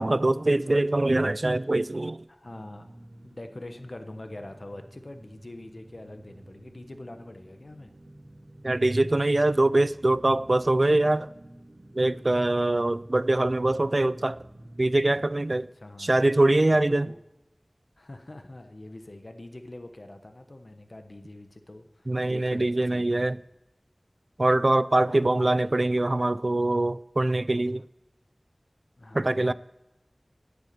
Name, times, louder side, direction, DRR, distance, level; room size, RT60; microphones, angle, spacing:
voice 1, 0.0-2.2 8.6-11.3 11.9-14.4 14.8-15.7 16.0-17.1 22.1-23.4 24.4-27.8 29.1-29.5, right 2 dB, 60° right, 0.4 m, -23 dB
voice 2, 2.3-2.9 3.2-7.9 15.6-16.3 16.6-17.2 18.0-23.3 25.0-25.8 29.0-29.5, left 1 dB, 65° left, 1.2 m, -44 dB
sound 1, 2.4-15.3, right 1 dB, 85° right, 1.3 m, -49 dB
10.5 x 9.3 x 9.4 m
wide cardioid pair, 45°, 0 cm